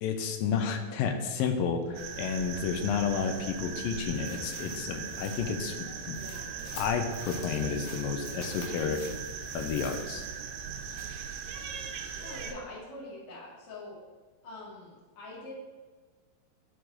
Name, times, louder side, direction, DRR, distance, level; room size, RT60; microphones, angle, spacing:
voice 1, 0.0-6.2 6.8-9.0 9.5-10.3, left 6 dB, 75° left, 5 dB, 2.4 m, -31 dB
sound 1, 1.9-12.5, right 6 dB, 75° right, 2.3 m, -39 dB
sound 2, 4.1-10.5 10.9-11.0, left 3 dB, 60° left, 2.2 m, -49 dB
voice 2, 12.2-14.0 14.4-15.5, left 2 dB, 40° left, -7 dB, 2.9 m, -44 dB
11.5 x 4.7 x 3.9 m, 1.4 s
omnidirectional pair, 4.3 m